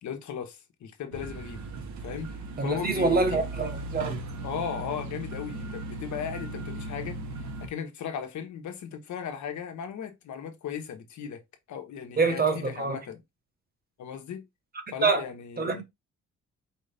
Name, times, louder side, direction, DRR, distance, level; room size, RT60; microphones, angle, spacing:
voice 1, 0.0-1.6 2.0-2.3 2.6-3.4 4.4-11.4 11.7-13.2 14.0-14.4 14.9-15.8, left 8 dB, 70° left, 1.2 m, -37 dB
sound 1, 1.1-7.7, right 2 dB, 70° right, 1.2 m, -37 dB
voice 2, 2.6-4.2 12.2-13.0 15.0-15.2 15.6-15.8, right 4 dB, 30° right, 1.2 m, -25 dB
4.9 x 2.6 x 3.4 m
cardioid pair, 90°, 30 cm